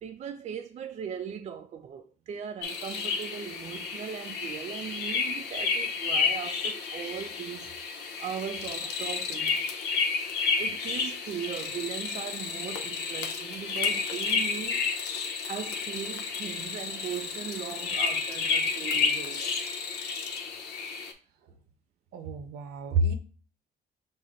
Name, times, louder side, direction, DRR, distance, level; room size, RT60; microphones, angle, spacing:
voice 1, 0.0-7.7 8.2-9.6 10.6-14.9 15.5-19.5, right 8 dB, 40° right, 0.4 m, -38 dB
sound 1, 2.6-21.1, left 5 dB, 80° left, 0.7 m, -31 dB
voice 2, 22.1-23.1, right 2 dB, 70° right, 0.7 m, -28 dB
5.7 x 2.0 x 3.7 m
cardioid pair, 110°, 17 cm